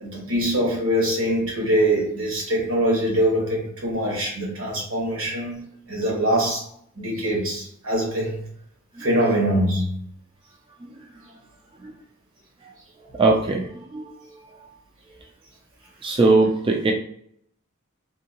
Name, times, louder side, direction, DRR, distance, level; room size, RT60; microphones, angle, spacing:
voice 1, 0.0-5.6 5.9-6.6 7.0-8.4 9.0-9.9, right 1 dB, 70° right, -2 dB, 1.3 m, -23 dB
voice 2, 13.1-14.3 16.0-16.9, right 3 dB, 25° right, 1 dB, 0.3 m, -21 dB
3.6 x 2.7 x 2.8 m, 0.66 s
head